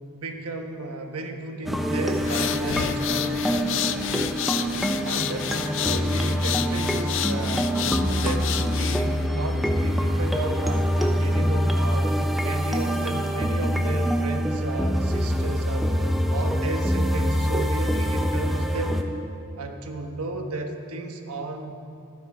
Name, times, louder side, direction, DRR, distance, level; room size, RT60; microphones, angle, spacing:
voice 1, 0.1-3.4 5.0-7.7 8.1-12.1 12.4-16.0 16.3-19.0 19.6-21.8, right 2 dB, 85° right, 4 dB, 1.2 m, -33 dB
sound 1, 1.7-19.0, equal, ahead, 0.6 m, -25 dB
sound 2, 2.1-9.3, left 10 dB, 55° left, 0.4 m, -30 dB
12.5 x 12.0 x 5.0 m, 2.5 s
head